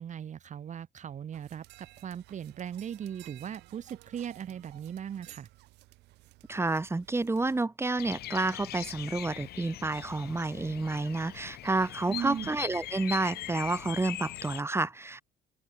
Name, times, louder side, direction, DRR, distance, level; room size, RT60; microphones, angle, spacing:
voice 1, 0.0-5.5 12.1-12.5, right 9 dB, 45° right, 1.8 m, -38 dB
sound 1, 1.3-7.6, right 20 dB, 90° right, 7.5 m, -55 dB
voice 2, 6.5-15.2, right 2 dB, 15° right, 2.7 m, -30 dB
Bird vocalization bird call bird song, 8.0-14.6, left 14 dB, 70° left, 3.7 m, -41 dB
open air
cardioid pair, 110°, 17 cm